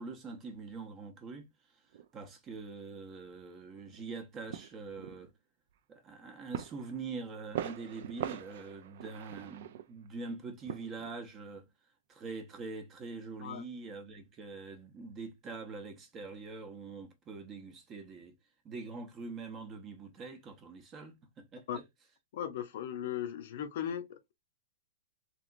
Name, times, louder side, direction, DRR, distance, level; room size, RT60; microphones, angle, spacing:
voice 1, 0.0-1.5 2.1-5.3 5.9-11.7 12.1-18.3 18.6-21.8, right 4 dB, 20° right, 0.7 m, -44 dB
sound 1, 1.9-2.1 3.0-3.1 3.7-4.0 4.5-5.3 6.5-7.0 7.3-10.3 10.6-11.2, right 10 dB, 55° right, 0.4 m, -42 dB
voice 2, 22.3-24.3, left 9 dB, 55° left, 0.6 m, -37 dB
3.1 x 2.9 x 2.4 m
hypercardioid pair, 155°, 0 cm